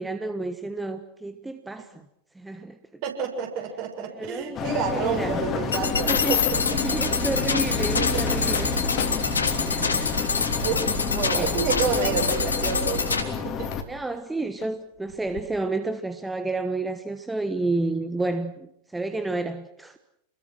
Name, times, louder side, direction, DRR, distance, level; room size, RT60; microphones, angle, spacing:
voice 1, 0.0-1.9 2.3-2.8 4.1-5.4 5.8-6.4 6.8-8.7 9.0-9.2 9.6-10.1 11.1-11.6 13.9-20.0, right 2 dB, 5° right, 8 dB, 1.4 m, -30 dB
voice 2, 3.0-6.8 8.0-8.1 10.3-13.0 13.3-13.7, right 6 dB, 45° right, 4 dB, 7.1 m, -29 dB
sound 1, 4.5-13.8, left 5 dB, 30° left, 3.6 m, -29 dB
sound 2, 5.7-13.2, left 4 dB, 75° left, 3.4 m, -26 dB
sound 3, 5.7-6.7 7.5-10.8 11.6-11.7 12.3-13.8 14.6-14.7 15.1-15.4, left 13 dB, 55° left, 2.1 m, -33 dB
30.0 x 21.5 x 6.2 m, 0.77 s
figure-of-eight pair, 90°, 0 cm